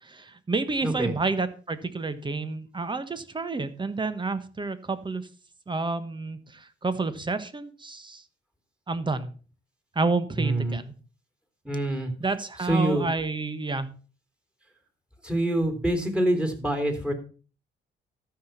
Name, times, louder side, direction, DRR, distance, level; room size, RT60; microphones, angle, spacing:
voice 1, 0.0-5.3 5.7-8.2 8.9-9.3 9.9-10.9 12.2-13.9, right 3 dB, 25° right, 12 dB, 1.4 m, -29 dB
voice 2, 0.8-1.1 10.3-10.8 11.6-12.1 12.6-13.1 15.2-17.1, right 1 dB, 5° right, 5 dB, 3.4 m, -26 dB
13.0 x 6.1 x 5.8 m, 0.37 s
cardioid pair, 90°, 20 cm